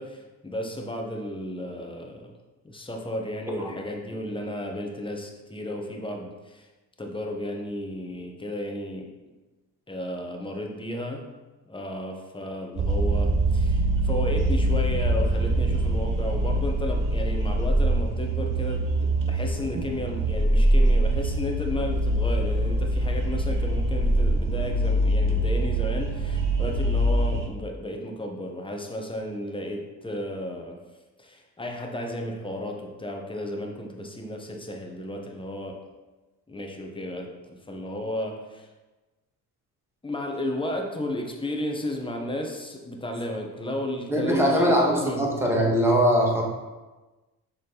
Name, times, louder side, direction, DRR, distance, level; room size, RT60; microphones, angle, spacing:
voice 1, 0.0-2.3 2.6-6.7 7.0-9.1 9.9-11.2 11.7-30.8 31.2-35.8 36.5-38.7 40.0-44.7 45.0-45.2, left 1 dB, 10° left, 2 dB, 1.2 m, -33 dB
sound 1, 12.8-27.5, right 1 dB, 45° right, 1.0 m, -24 dB
voice 2, 44.1-46.4, equal, 5° right, -2 dB, 1.7 m, -21 dB
6.5 x 3.9 x 4.1 m, 1.2 s
hypercardioid pair, 55°, 44 cm